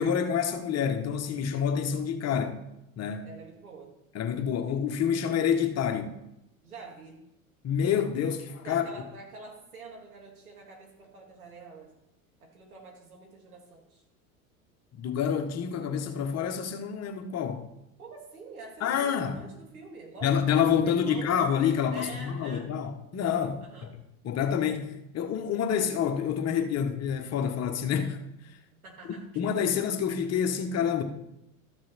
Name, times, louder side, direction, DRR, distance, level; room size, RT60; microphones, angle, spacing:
voice 1, 0.0-2.6 3.0-3.3 4.1-6.1 7.6-8.8 14.9-17.7 18.8-19.4 20.2-23.6 24.2-28.6 29.3-31.0, left 8 dB, 35° left, 1.3 m, -28 dB
voice 2, 3.2-3.9 6.6-7.2 8.6-11.9 12.4-14.0 18.0-21.3 21.9-22.7 23.6-23.9 28.8-29.3, right 3 dB, 90° right, 2.4 m, -46 dB
13.5 x 6.2 x 4.3 m
hypercardioid pair, 85°, 42 cm